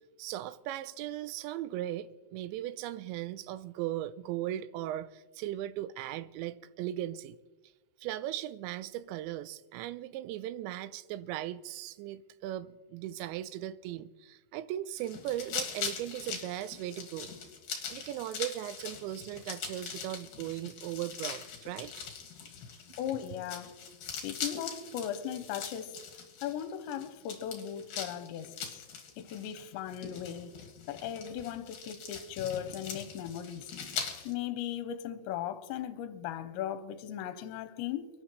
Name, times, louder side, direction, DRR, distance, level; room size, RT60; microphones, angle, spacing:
voice 1, 0.2-7.4 8.0-17.3 17.9-21.9, right 13 dB, 85° right, 2.8 m, -38 dB
sound 1, 15.0-34.3, left 6 dB, 55° left, 2.9 m, -42 dB
voice 2, 23.0-23.8 24.2-26.0 26.4-28.8 29.2-30.6 30.9-33.7 34.3-38.1, left 10 dB, 85° left, 2.9 m, -37 dB
30.0 x 11.0 x 3.1 m
omnidirectional pair, 5.3 m